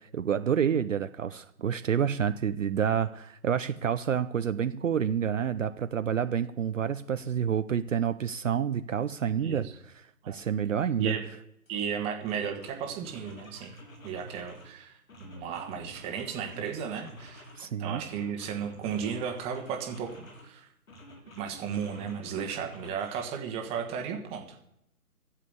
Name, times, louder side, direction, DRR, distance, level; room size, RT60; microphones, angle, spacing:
voice 1, 0.0-11.2 17.6-18.0, right 8 dB, 60° right, 11 dB, 0.7 m, -29 dB
voice 2, 9.4-9.7 10.2-10.4 11.0-11.3 11.7-13.7 14.0-17.5 17.8-20.7 21.4-24.6, right 7 dB, 15° right, 3 dB, 1.5 m, -35 dB
sound 1, 11.7-11.8 12.2-14.7 15.1-17.6 18.0-20.5 20.9-23.2, equal, 65° left, 4.6 m, -50 dB
13.0 x 7.5 x 8.5 m, 0.77 s
figure-of-eight pair, 145°, 44 cm